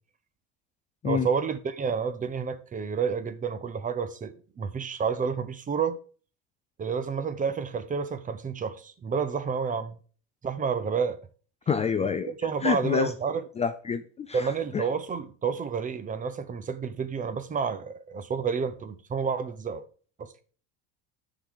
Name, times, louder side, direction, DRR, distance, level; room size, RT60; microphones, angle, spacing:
voice 1, 1.0-6.0 6.8-10.0 10.4-11.2 12.3-13.4 14.3-19.8 20.2-20.3, right 6 dB, 25° right, 0.7 m, -30 dB
voice 2, 11.7-12.3 12.6-13.1 13.6-14.8, left 6 dB, 20° left, 0.4 m, -27 dB
10.0 x 4.0 x 4.7 m
cardioid pair, 125°, 33 cm